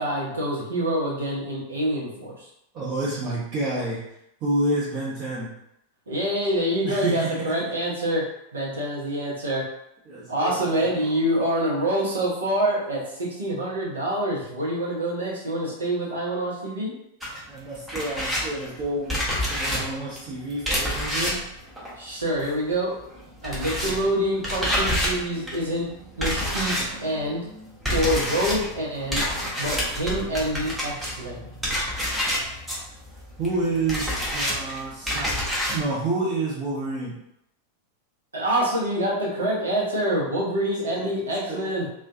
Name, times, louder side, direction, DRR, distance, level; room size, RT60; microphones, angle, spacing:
voice 1, 0.0-2.5 6.1-8.2 8.5-9.7 10.3-16.9 22.0-23.0 23.4-25.9 26.2-26.7 27.0-27.4 27.9-29.2 29.6-31.4 38.3-41.9, right 1 dB, 75° right, -5 dB, 0.9 m, -26 dB
voice 2, 2.7-4.0 4.4-5.5 6.8-7.7 10.1-11.2 17.5-19.2 19.5-21.4 33.4-35.3 35.7-37.1 40.9-41.1 41.5-41.7, right 2 dB, 40° right, -11 dB, 0.9 m, -29 dB
sound 1, 17.2-22.7 23.0-35.9, equal, 10° right, 0.7 m, -28 dB
2.4 x 2.3 x 2.5 m, 0.79 s
figure-of-eight pair, 90°, 0 cm